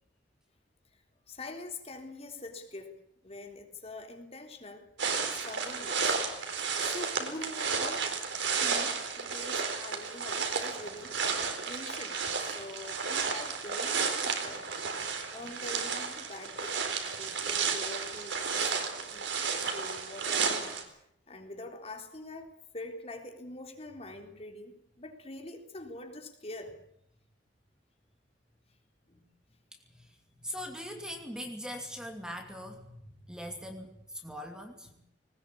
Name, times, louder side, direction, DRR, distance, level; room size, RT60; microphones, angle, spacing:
voice 1, 1.3-3.0 3.2-6.2 6.8-8.1 8.6-14.7 15.0-16.8 17.1-19.3 19.6-21.0 21.3-26.7 29.1-29.2 34.9-35.0, left 2 dB, 35° left, 4 dB, 3.7 m, -45 dB
sound 1, 5.0-20.8, right 5 dB, 75° right, 4.2 m, -32 dB
voice 2, 29.7-34.9, equal, 5° right, 3 dB, 2.7 m, -42 dB
20.5 x 20.0 x 8.6 m, 0.73 s
head